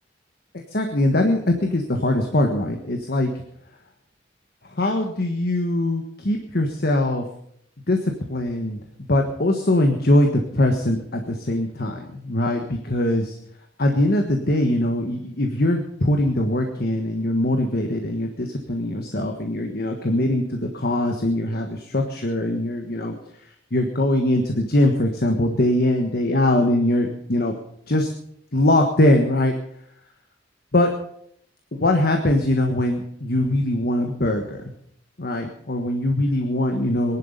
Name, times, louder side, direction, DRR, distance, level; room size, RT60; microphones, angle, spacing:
voice 1, 0.7-3.3 4.7-7.2 7.9-8.8 9.1-13.4 13.8-23.1 23.7-27.5 27.9-28.1 28.5-29.5 30.7-30.9 31.7-34.6 35.2-37.2, left 1 dB, 55° left, 3 dB, 1.5 m, -22 dB
20.0 x 11.5 x 5.2 m, 0.70 s
head